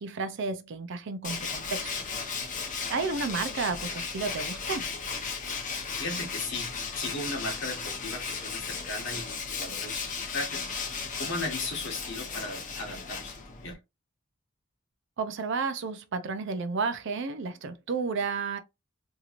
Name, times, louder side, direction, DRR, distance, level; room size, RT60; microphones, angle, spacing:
voice 1, 0.0-2.1 2.4-2.6 2.9-4.9 15.2-18.6, right 4 dB, 60° right, 0.5 m, -32 dB
Tools, 1.2-13.7, left 5 dB, 35° left, 0.7 m, -35 dB
voice 2, 6.0-10.7 11.2-13.8, left 2 dB, 60° left, 1.1 m, -37 dB
2.9 x 2.7 x 2.4 m
head